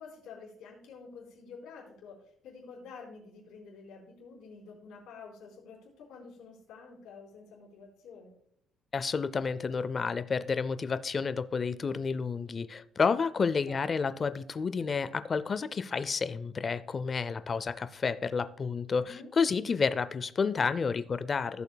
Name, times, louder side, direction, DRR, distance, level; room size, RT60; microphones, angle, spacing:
voice 1, 0.0-8.3 13.6-13.8 19.0-19.3, left 4 dB, 75° left, -4 dB, 3.7 m, -49 dB
voice 2, 8.9-21.6, left 5 dB, 25° left, 14 dB, 0.4 m, -30 dB
16.0 x 6.9 x 2.2 m, 0.71 s
cardioid pair, 170°, 0 cm